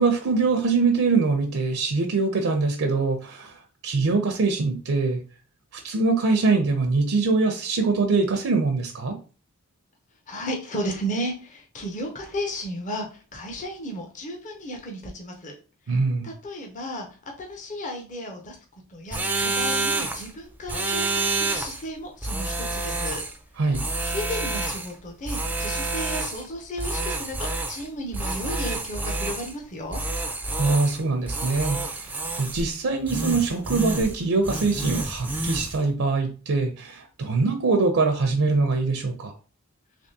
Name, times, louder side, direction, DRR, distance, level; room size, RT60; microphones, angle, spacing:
voice 1, 0.0-5.2 5.7-9.2 15.9-16.3 23.6-23.8 30.6-39.3, right 3 dB, 70° right, 5 dB, 0.5 m, -23 dB
voice 2, 10.3-15.6 15.9-17.1 17.4-18.6 18.9-23.2 24.0-30.0, equal, 35° left, 2 dB, 0.6 m, -34 dB
sound 1, 19.1-20.3 20.7-21.8 22.2-23.4 23.7-24.9 25.2-26.5 26.8-27.9 28.1-29.5 29.9-31.0 31.3-32.7 33.1-34.2 34.4-35.8, right 2 dB, 10° right, 0.3 m, -28 dB
3.4 x 3.1 x 2.7 m, 0.36 s
head